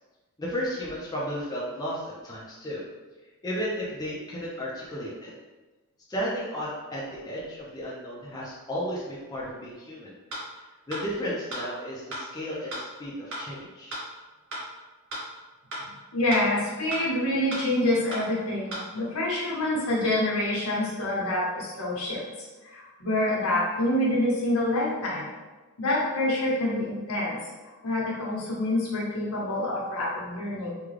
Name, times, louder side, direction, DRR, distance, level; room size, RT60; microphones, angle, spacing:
voice 1, 0.4-2.8 3.4-5.3 6.1-10.1 10.9-13.9, equal, 20° left, -6 dB, 0.5 m, -33 dB
sound 1, 10.3-10.4 10.9-11.0 11.5-11.6 12.1-12.2 12.7-12.8 13.3-13.4 13.9-14.0 14.5-14.6 15.1-15.2 15.7-15.8 16.3-16.4 16.9-17.0 17.5-17.6 18.1-18.2 18.7-18.8, right 1 dB, 60° right, 1.0 m, -34 dB
voice 2, 15.8-22.2 22.6-25.3 25.8-27.4 27.8-30.7, left 1 dB, 70° left, -4 dB, 1.0 m, -27 dB
3.6 x 2.3 x 3.2 m, 1.2 s
head